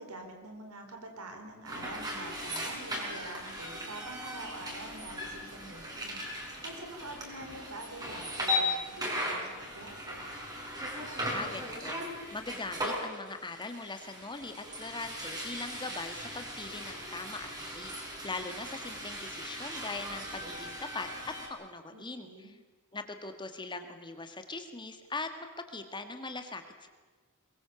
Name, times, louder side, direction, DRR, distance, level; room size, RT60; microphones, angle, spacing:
voice 1, 0.0-6.2 6.6-10.2 21.9-22.5, right 2 dB, 80° right, 5 dB, 4.4 m, -46 dB
sound 1, 1.6-21.5, left 1 dB, 15° right, 5.0 m, -38 dB
voice 2, 11.3-12.0 12.3-21.1 21.5-22.6 22.9-26.9, left 3 dB, 20° left, 7 dB, 1.7 m, -41 dB
23.0 x 21.5 x 7.0 m, 1.4 s
head